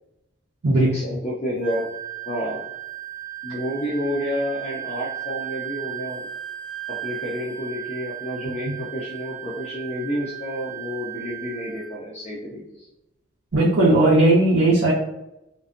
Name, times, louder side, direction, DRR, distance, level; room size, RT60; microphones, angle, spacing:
voice 1, 0.7-1.9 2.2-2.7 3.4-6.3 6.9-12.9, equal, 30° left, -6 dB, 0.4 m, -30 dB
Wind instrument woodwind instrument, 1.6-12.0, right 13 dB, 5° right, 1.3 m, -35 dB
voice 2, 13.5-14.9, right 2 dB, 70° right, -7 dB, 0.6 m, -17 dB
2.5 x 2.1 x 2.4 m, 0.88 s
head